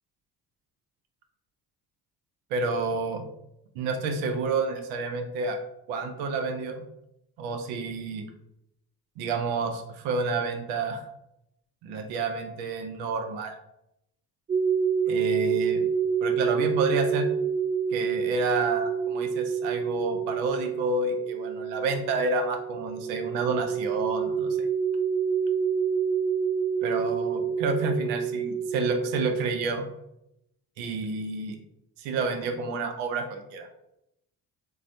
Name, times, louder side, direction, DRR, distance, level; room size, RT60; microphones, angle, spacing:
voice 1, 2.5-3.2 3.8-5.6 5.9-6.8 7.4-8.3 9.2-11.0 11.8-13.5 15.1-15.8 16.2-17.3 17.9-24.7 26.8-29.9 30.8-31.6 32.0-33.7, right 3 dB, 70° right, 5 dB, 0.7 m, -29 dB
sound 1, 14.5-29.6, right 6 dB, 20° right, 0.4 m, -28 dB
4.0 x 2.3 x 2.5 m, 0.83 s
hypercardioid pair, 45°, 47 cm